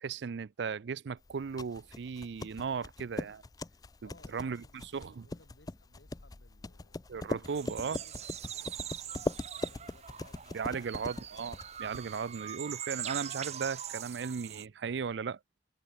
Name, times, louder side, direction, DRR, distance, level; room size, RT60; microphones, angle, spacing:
voice 1, 0.0-3.4 4.3-4.6 4.9-5.3 7.1-8.0 10.5-15.4, right 6 dB, 70° right, 0.4 m, -36 dB
sound 1, 1.3-12.3, left 2 dB, 20° left, 0.4 m, -41 dB
voice 2, 4.0-7.0 7.3-11.0, left 2 dB, 85° left, 3.9 m, -63 dB
sound 2, 7.5-14.7, right 9 dB, 40° right, 0.8 m, -42 dB
head